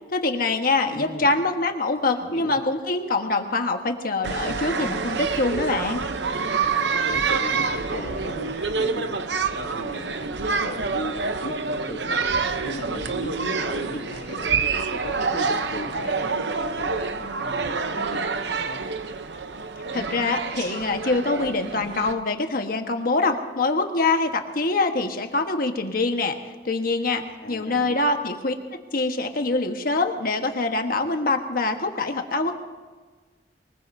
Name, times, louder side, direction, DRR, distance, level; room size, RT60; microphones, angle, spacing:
voice 1, 0.1-6.1 19.9-26.4 26.6-28.5 28.9-32.5, left 3 dB, 55° left, 5 dB, 1.3 m, -24 dB
voice 2, 0.9-1.3 2.1-2.6 7.1-18.8 27.4-28.0, left 1 dB, 75° left, -1 dB, 2.7 m, -37 dB
sound 1, 4.2-22.1, right 4 dB, 70° right, 0.8 m, -27 dB
23.5 x 20.5 x 2.7 m, 1.4 s
head